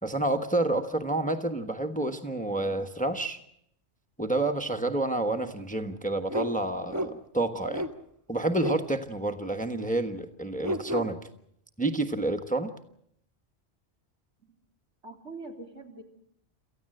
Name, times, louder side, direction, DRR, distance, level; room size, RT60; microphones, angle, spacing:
voice 1, 0.0-3.4 4.2-7.8 8.3-11.2 11.8-12.7, right 2 dB, 5° left, 7 dB, 1.2 m, -29 dB
sound 1, 6.3-6.5 6.9-7.1 7.7-7.9 8.5-8.8 9.8-9.9 10.6-11.1, equal, 15° right, 1.1 m, -31 dB
voice 2, 15.0-16.0, right 3 dB, 75° right, 2 dB, 3.7 m, -43 dB
28.5 x 14.5 x 7.8 m, 0.73 s
omnidirectional pair, 1.2 m